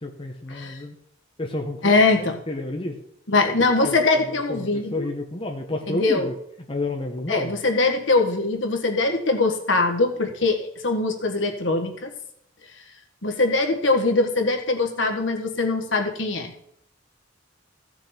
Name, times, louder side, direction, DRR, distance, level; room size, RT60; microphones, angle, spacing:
voice 1, 0.0-1.0 1.4-3.0 3.8-6.3 6.7-7.5, left 2 dB, 30° left, 2 dB, 1.0 m, -31 dB
voice 2, 1.8-2.4 3.3-5.1 5.9-6.3 7.3-12.1 13.2-16.5, left 3 dB, 70° left, 4 dB, 1.6 m, -22 dB
15.0 x 6.5 x 4.4 m, 0.70 s
head